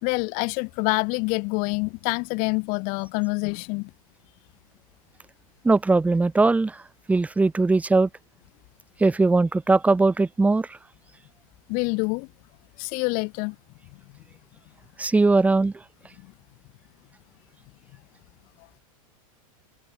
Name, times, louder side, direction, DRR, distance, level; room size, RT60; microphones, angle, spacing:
voice 1, 0.0-3.9 11.7-12.3 12.8-13.6, left 31 dB, 50° left, 3.6 m, -26 dB
voice 2, 5.6-6.8 7.1-8.1 9.0-10.7 15.0-15.7, right 3 dB, 10° right, 1.5 m, -20 dB
open air
supercardioid pair, 130°, 18 cm